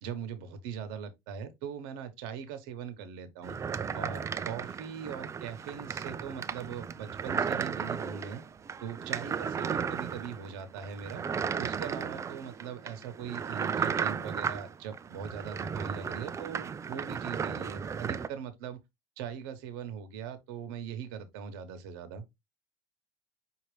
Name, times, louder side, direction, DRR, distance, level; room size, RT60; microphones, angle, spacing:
voice 1, 0.0-3.5 3.9-8.4 8.8-18.8 19.2-22.2, right 7 dB, 90° right, 1.1 m, -41 dB
sound 1, 3.4-18.3, right 6 dB, 25° right, 0.4 m, -35 dB
5.6 x 2.8 x 3.2 m
supercardioid pair, 105°, 12 cm